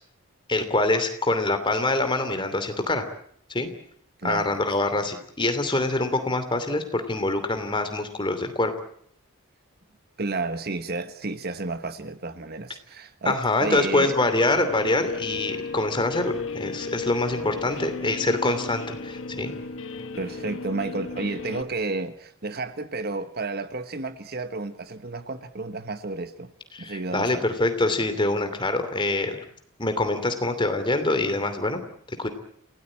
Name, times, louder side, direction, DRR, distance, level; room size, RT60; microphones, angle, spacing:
voice 1, 0.5-3.1 3.5-3.7 4.2-8.7 13.2-19.5 26.7-29.4 29.8-31.8 32.2-32.3, left 2 dB, 20° left, 2.8 m, -25 dB
voice 2, 4.2-4.6 10.2-14.2 17.7-17.8 20.2-26.5 26.8-27.5, right 3 dB, 45° right, 1.2 m, -31 dB
Guitar, 13.7-21.6, left 4 dB, 60° left, 1.5 m, -35 dB
28.0 x 17.5 x 8.8 m
head